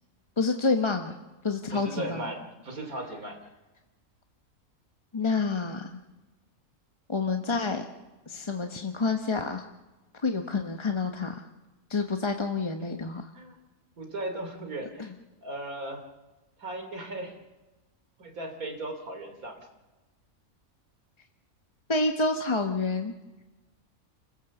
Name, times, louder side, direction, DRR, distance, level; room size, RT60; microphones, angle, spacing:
voice 1, 0.4-1.1 1.4-2.2 5.1-5.9 7.1-7.8 8.3-9.6 10.2-11.4 11.9-13.3 15.0-15.1 21.9-23.1, left 3 dB, 25° left, 5 dB, 0.8 m, -28 dB
voice 2, 1.7-3.4 13.3-13.5 14.0-15.1 15.4-16.0 16.6-17.4 18.2-19.7, right 1 dB, 85° right, 4 dB, 3.4 m, -37 dB
29.0 x 16.0 x 7.1 m, 1.1 s
omnidirectional pair, 1.5 m